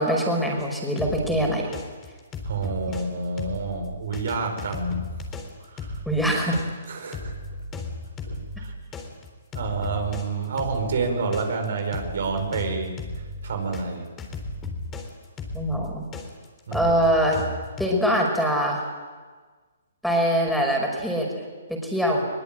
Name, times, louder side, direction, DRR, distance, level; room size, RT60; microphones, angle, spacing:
voice 1, 0.0-1.7 6.1-6.6 15.5-16.0 16.7-17.4 17.8-18.8 20.0-21.3 21.7-22.2, equal, ahead, 0 dB, 5.4 m, -23 dB
sound 1, 0.6-3.1 3.4-13.8 14.2-17.9, left 2 dB, 20° left, 3.9 m, -35 dB
voice 2, 2.4-5.0 5.7-6.0 6.9-7.3 8.3-8.7 9.5-14.1 16.7-16.9, right 4 dB, 65° right, 5 dB, 4.9 m, -29 dB
22.0 x 20.5 x 9.0 m, 1.4 s
hypercardioid pair, 140°, 0 cm